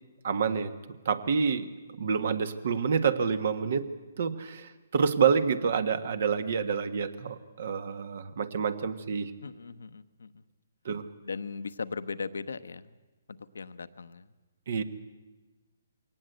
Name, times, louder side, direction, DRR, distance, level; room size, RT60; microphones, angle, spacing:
voice 1, 0.2-0.7 1.0-1.7 2.0-3.8 4.2-9.3 10.8-11.1 14.7-14.8, right 6 dB, 60° right, 12 dB, 1.5 m, -28 dB
voice 2, 9.4-10.4 11.2-12.9 13.3-14.3, left 4 dB, 85° left, 13 dB, 0.9 m, -38 dB
22.5 x 18.0 x 8.1 m, 1.2 s
hypercardioid pair, 145°, 0 cm